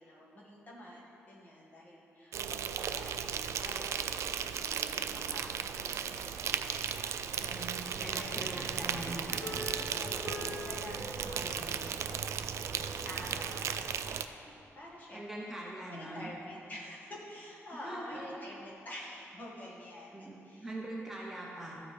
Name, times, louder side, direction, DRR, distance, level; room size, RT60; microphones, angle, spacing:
voice 1, 0.0-8.4 8.8-9.2 10.0-15.5 15.9-20.7, left 1 dB, 35° left, -5 dB, 1.7 m, -48 dB
Insect, 2.3-14.3, right 8 dB, 75° right, 0.3 m, -36 dB
voice 2, 7.4-9.4 11.4-11.8 15.1-16.3 17.8-18.3 20.1-20.4 20.6-21.7, right 1 dB, 10° right, -5 dB, 0.9 m, -42 dB
sound 1, 8.2-13.3, left 2 dB, 85° left, 1.2 m, -46 dB
13.5 x 4.7 x 3.4 m, 2.7 s
wide cardioid pair, 145°, 5 cm